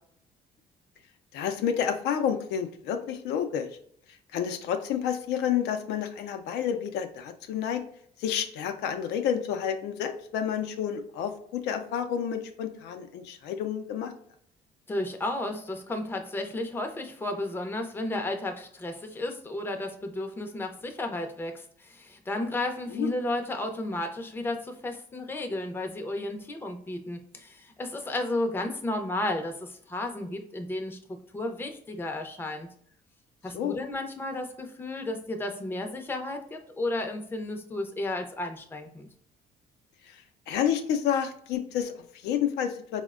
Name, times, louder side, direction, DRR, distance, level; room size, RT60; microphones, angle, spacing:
voice 1, 1.3-3.7 4.3-7.8 8.2-14.1 22.9-23.1 33.5-33.8 40.0-43.0, left 8 dB, 80° left, 6 dB, 0.4 m, -30 dB
voice 2, 14.9-32.7 33.4-39.1, left 2 dB, 15° left, 4 dB, 0.5 m, -33 dB
4.2 x 2.1 x 2.4 m, 0.63 s
cardioid pair, 110°, 17 cm